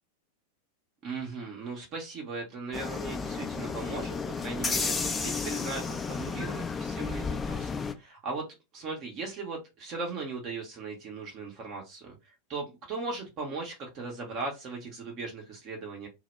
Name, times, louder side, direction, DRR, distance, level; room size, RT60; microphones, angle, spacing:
voice 1, 1.0-4.2 4.4-8.5 8.7-16.1, right 3 dB, 35° right, 0.6 m, -38 dB
sound 1, 2.7-7.9, left 5 dB, 15° left, 0.3 m, -32 dB
2.0 x 2.0 x 3.1 m
figure-of-eight pair, 90°, 0 cm